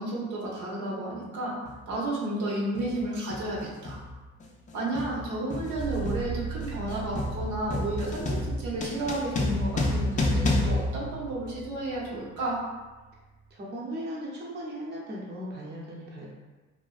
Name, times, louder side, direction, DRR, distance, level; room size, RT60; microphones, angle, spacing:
voice 1, 0.0-1.5 1.9-4.0 4.7-12.6, right 1 dB, 75° right, -5 dB, 0.8 m, -32 dB
sound 1, 1.7-1.8 2.8-3.0 3.3-11.8, left 2 dB, 25° left, 0.4 m, -30 dB
sound 2, 5.8-13.5, right 5 dB, 5° left, 0.7 m, -41 dB
voice 2, 13.5-16.3, equal, 35° right, -4 dB, 0.6 m, -37 dB
2.5 x 2.1 x 2.3 m, 1.2 s
cardioid pair, 90°, 30 cm